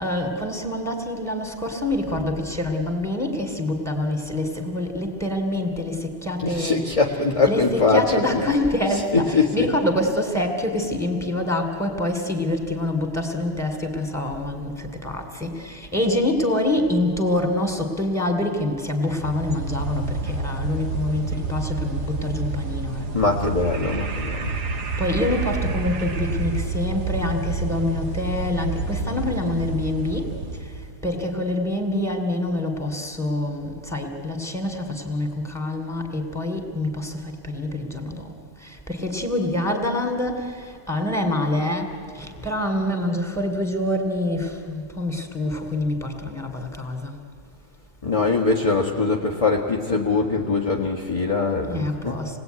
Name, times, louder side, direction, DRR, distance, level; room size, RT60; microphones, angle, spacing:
voice 1, 0.0-6.8 7.5-23.2 25.0-47.2 51.6-52.4, left 1 dB, ahead, 4 dB, 3.1 m, -26 dB
voice 2, 6.4-8.4 8.9-9.7 23.1-24.5 48.0-52.4, left 4 dB, 20° left, -1 dB, 1.6 m, -22 dB
sound 1, 19.0-31.0, right 3 dB, 75° right, 2.2 m, -29 dB
28.0 x 19.5 x 9.4 m, 2.4 s
omnidirectional pair, 1.7 m